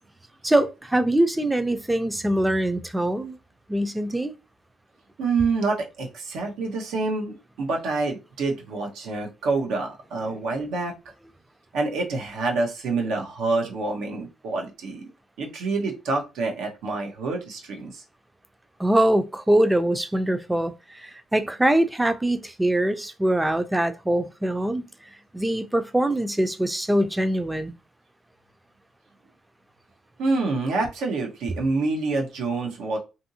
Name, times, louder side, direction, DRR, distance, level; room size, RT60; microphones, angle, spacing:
voice 1, 0.4-3.4 3.7-4.4 18.8-24.8 25.3-27.7, right 1 dB, 10° right, 0.4 m, -23 dB
voice 2, 5.2-10.9 11.7-15.1 15.4-18.0 30.2-33.0, right 3 dB, 85° right, 0.8 m, -27 dB
2.7 x 2.6 x 2.7 m
cardioid pair, 90°, 0 cm